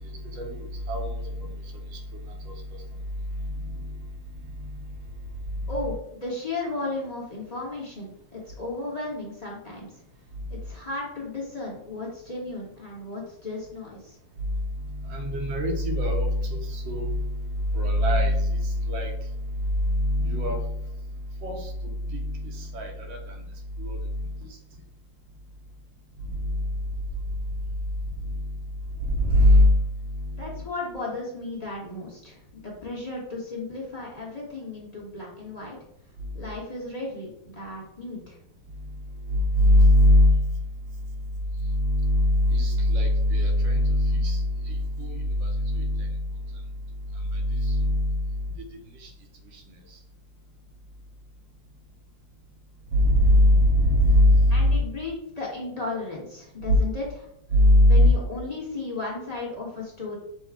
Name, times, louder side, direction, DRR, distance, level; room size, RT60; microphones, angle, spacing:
voice 1, 0.0-3.0 3.3-5.2 10.3-10.4 14.4-21.0 21.3-23.5 23.8-24.6 26.2-26.7 28.1-28.6 28.9-30.6 36.2-36.3 38.7-40.6 41.6-46.2 46.5-46.6 47.1-49.1 49.5-50.0 52.9-54.8 56.6-56.8 57.5-58.1, left 1 dB, 70° right, 2 dB, 1.5 m, -23 dB
voice 2, 5.7-9.9 10.5-14.2 30.3-35.8 36.3-38.4 54.5-57.3 57.9-60.2, left 2 dB, 25° left, -5 dB, 1.0 m, -35 dB
6.1 x 2.3 x 3.4 m, 0.77 s
omnidirectional pair, 2.3 m